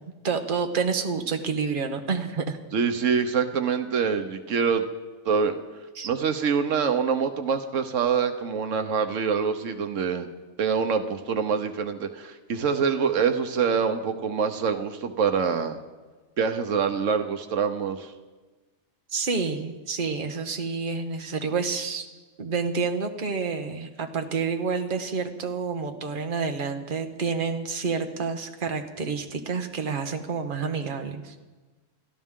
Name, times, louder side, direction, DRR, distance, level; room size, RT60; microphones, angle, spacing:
voice 1, 0.2-2.6 5.9-6.1 19.1-22.1 22.4-31.3, right 5 dB, 45° right, 5 dB, 1.3 m, -29 dB
voice 2, 2.7-4.9 5.2-5.5 6.0-10.3 10.6-15.8 16.4-18.1, right 6 dB, 85° right, 8 dB, 1.3 m, -25 dB
30.0 x 12.5 x 3.7 m, 1.3 s
omnidirectional pair, 1.3 m